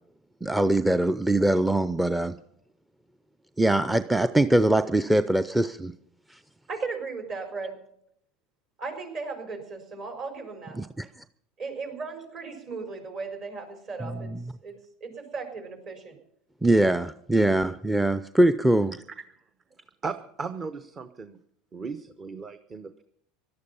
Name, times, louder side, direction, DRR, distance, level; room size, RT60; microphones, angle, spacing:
voice 1, 0.4-2.4 3.6-5.9 6.3-6.4 10.8-11.1 14.0-14.1 16.6-19.0, right 1 dB, 5° right, 12 dB, 0.6 m, -22 dB
voice 2, 6.7-7.8 8.8-10.8 11.6-14.3 14.6-16.2, right 4 dB, 50° right, 5 dB, 4.8 m, -36 dB
voice 3, 20.0-21.4 21.7-23.0, right 5 dB, 30° right, 11 dB, 0.9 m, -36 dB
17.5 x 12.0 x 5.5 m, 0.69 s
hypercardioid pair, 85°, 0 cm